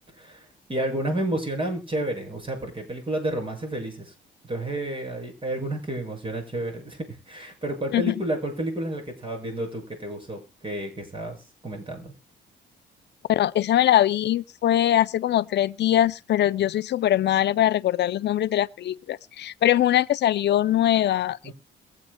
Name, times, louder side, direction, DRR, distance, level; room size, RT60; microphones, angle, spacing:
voice 1, 0.7-4.1 4.4-7.0 7.3-11.4 11.6-12.1 21.4-21.5, right 1 dB, 25° right, 6.7 m, -30 dB
voice 2, 13.3-21.5, left 12 dB, 60° left, 0.5 m, -22 dB
22.5 x 8.4 x 2.2 m
cardioid pair, 90°, 20 cm